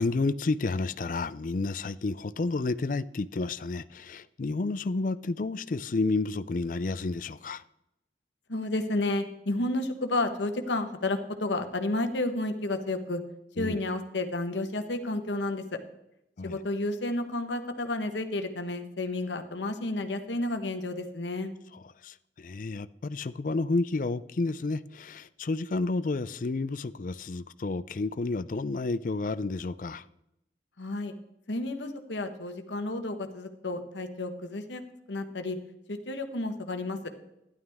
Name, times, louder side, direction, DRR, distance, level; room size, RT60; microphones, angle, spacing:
voice 1, 0.0-7.6 13.6-13.8 16.4-16.6 21.7-30.0, left 3 dB, 45° left, 0.4 m, -31 dB
voice 2, 8.5-13.2 13.6-15.6 16.4-21.5 30.8-31.1 31.5-34.8 35.1-35.6 35.9-37.0, left 2 dB, 90° left, 1.2 m, -31 dB
12.5 x 11.0 x 3.5 m
head